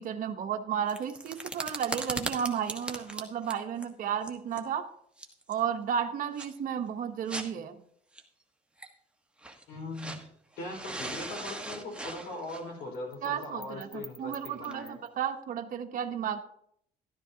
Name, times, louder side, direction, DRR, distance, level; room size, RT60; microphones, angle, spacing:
voice 1, 0.0-4.8 5.5-7.8 13.2-16.4, right 8 dB, 55° right, 5 dB, 1.1 m, -33 dB
sound 1, 0.9-3.9 4.2-4.6 5.2-5.5 6.4-6.5 7.3-7.4 8.2-8.3 8.8-8.9 9.4-10.3 10.6-15.1, right 2 dB, 5° right, 1.4 m, -39 dB
voice 2, 9.7-10.2 10.6-15.0, left 2 dB, 80° left, 1 dB, 4.7 m, -40 dB
13.0 x 13.0 x 2.8 m, 0.70 s
cardioid pair, 110°, 17 cm